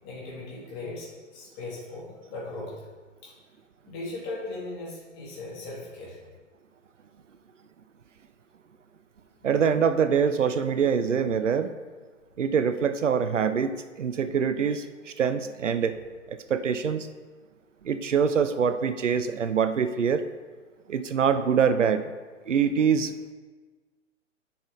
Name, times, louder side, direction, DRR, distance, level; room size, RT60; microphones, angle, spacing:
voice 1, 0.0-2.8 3.2-3.3 3.9-6.2 9.4-9.5, left 2 dB, 25° left, -5 dB, 2.7 m, -38 dB
voice 2, 9.4-11.7 12.4-16.0 16.3-17.1 17.8-20.2 20.9-22.0 22.5-23.2, right 7 dB, 70° right, 11 dB, 0.6 m, -24 dB
10.5 x 5.9 x 3.9 m, 1.4 s
figure-of-eight pair, 120°, 39 cm